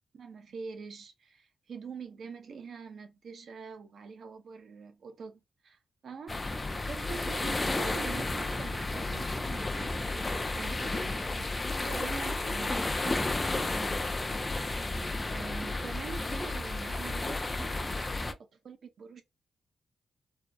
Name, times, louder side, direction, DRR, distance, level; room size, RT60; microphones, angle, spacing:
voice 1, 0.1-14.5 15.3-18.4 18.6-19.2, right 5 dB, 60° right, 0.6 m, -45 dB
sound 1, 6.3-18.3, left 2 dB, 20° left, 0.4 m, -32 dB
2.7 x 2.0 x 2.2 m
wide cardioid pair, 130°, 0 cm